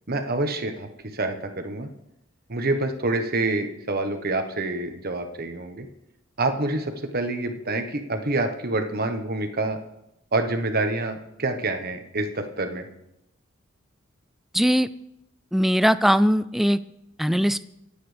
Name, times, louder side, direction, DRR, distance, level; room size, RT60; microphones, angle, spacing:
voice 1, 0.1-0.9 1.1-1.9 2.5-5.9 6.4-9.8 10.3-12.9, right 2 dB, 50° right, 5 dB, 1.3 m, -27 dB
voice 2, 14.5-14.9 15.5-16.8 17.2-17.7, equal, ahead, 15 dB, 0.3 m, -20 dB
24.0 x 8.6 x 3.4 m, 0.85 s
head